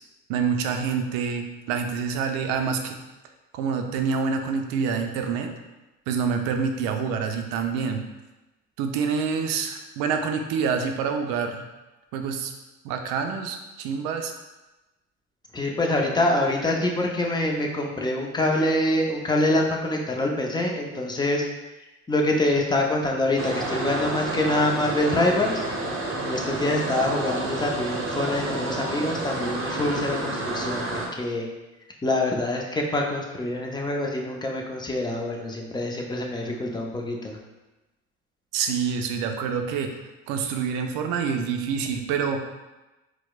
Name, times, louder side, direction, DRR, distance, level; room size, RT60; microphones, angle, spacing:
voice 1, 0.3-3.0 3.5-5.5 6.1-8.0 8.8-11.6 12.1-12.5 12.8-14.3 38.5-40.0 40.3-42.4, right 6 dB, 65° right, 5 dB, 0.5 m, -27 dB
voice 2, 15.5-21.4 22.1-25.7 26.2-31.5 32.0-37.4, left 1 dB, 10° left, 0 dB, 0.5 m, -25 dB
sound 1, 23.4-31.1, right 2 dB, 35° right, 0.8 m, -30 dB
4.5 x 2.1 x 2.3 m, 1.1 s
hypercardioid pair, 70°, 36 cm